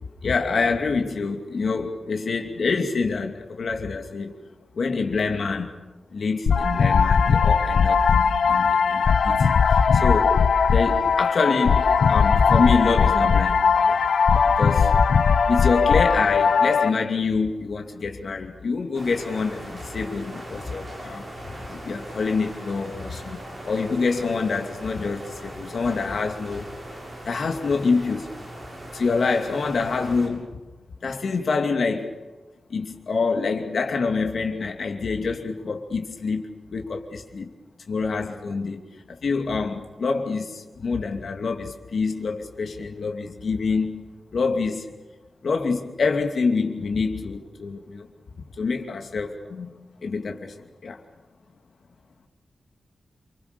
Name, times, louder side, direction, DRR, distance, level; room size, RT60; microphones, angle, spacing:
voice 1, 0.2-4.4 4.7-5.7 6.1-10.4 10.7-13.6 13.9-14.0 14.4-14.9 15.5-21.3 21.7-23.4 23.6-26.7 27.3-28.3 28.9-30.6 31.0-32.2 32.7-36.5 36.7-37.5 37.9-44.0 44.3-44.9 45.4-48.1 48.6-49.7 50.0-51.0, left 4 dB, 60° left, 3 dB, 2.7 m, -26 dB
sound 1, 6.5-16.9, left 6 dB, 90° left, 1.0 m, -19 dB
sound 2, 18.9-30.3, right 1 dB, 30° right, 7.9 m, -39 dB
28.5 x 25.0 x 7.0 m, 1.2 s
wide cardioid pair, 165°, 0 cm